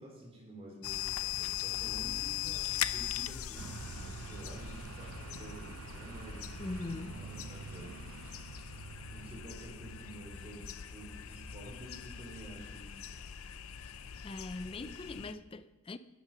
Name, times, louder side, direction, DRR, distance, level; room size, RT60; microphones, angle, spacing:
voice 1, 0.0-6.5 7.0-8.0 9.1-13.0, right 1 dB, 25° right, 3.7 m, -50 dB
sound 1, 0.8-15.3, left 10 dB, 75° left, 0.6 m, -41 dB
Bus, 3.6-9.5, right 6 dB, 70° right, 0.4 m, -48 dB
voice 2, 6.6-7.2 14.2-16.0, left 2 dB, 25° left, 0.4 m, -41 dB
14.0 x 8.8 x 6.0 m
head